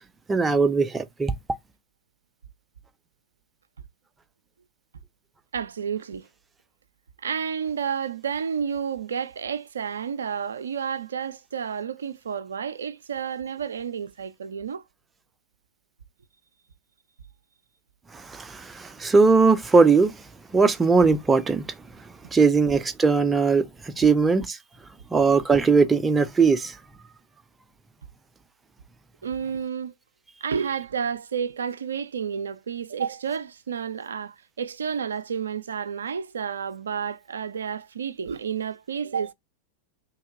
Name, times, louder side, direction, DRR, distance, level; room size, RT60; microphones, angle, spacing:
voice 1, 0.3-1.3 18.1-20.2 20.5-21.6 22.3-23.7 24.0-24.6 25.1-26.7, right 4 dB, 15° right, 0.5 m, -19 dB
voice 2, 5.5-6.3 7.2-14.8 29.2-29.9 30.4-39.3, right 7 dB, 70° right, 0.4 m, -30 dB
3.4 x 2.8 x 3.7 m
figure-of-eight pair, 90°, 0 cm